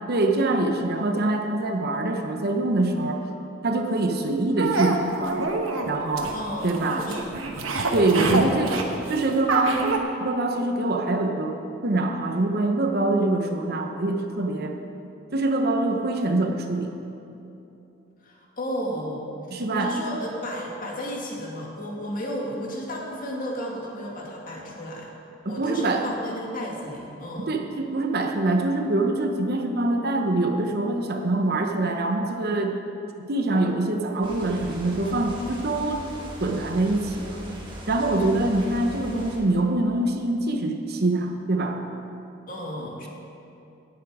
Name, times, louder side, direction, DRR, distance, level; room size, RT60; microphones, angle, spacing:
voice 1, 0.1-3.2 3.6-5.6 5.9-6.3 6.6-7.1 7.9-11.5 11.8-14.8 15.3-16.9 19.5-19.9 25.4-26.1 27.5-32.7 33.3-36.1 36.4-37.4 37.9-41.8, right 2 dB, 50° right, 4 dB, 0.9 m, -24 dB
sound 1, 4.6-10.0, right 3 dB, 80° right, 1.1 m, -27 dB
voice 2, 6.3-7.4 8.0-8.5 18.2-19.2 19.5-25.1 25.5-27.5 42.5-43.1, equal, 45° left, -2 dB, 2.0 m, -33 dB
sound 2, 34.2-39.4, equal, 25° right, 1.8 m, -39 dB
17.5 x 7.1 x 4.9 m, 2.8 s
head